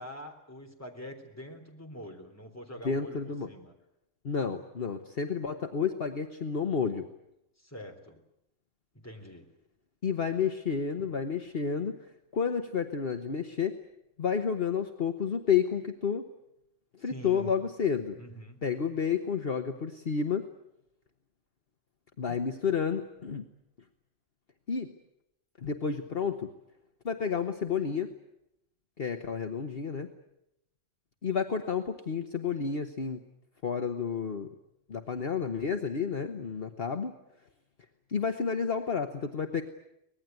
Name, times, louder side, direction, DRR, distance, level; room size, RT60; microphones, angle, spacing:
voice 1, 0.0-3.7 7.6-8.2 8.9-9.5 17.0-17.5 18.1-18.6, equal, 10° left, 3 dB, 3.5 m, -45 dB
voice 2, 2.8-3.5 4.2-7.1 10.0-12.0 12.3-13.7 14.2-16.3 17.0-18.2 18.6-20.5 22.2-23.5 24.7-24.9 25.6-26.5 27.0-28.1 29.0-30.1 31.2-33.2 33.6-34.5 34.9-37.1 38.1-39.6, left 6 dB, 50° left, 5 dB, 1.4 m, -30 dB
24.5 x 19.5 x 9.3 m, 0.83 s
omnidirectional pair, 1.3 m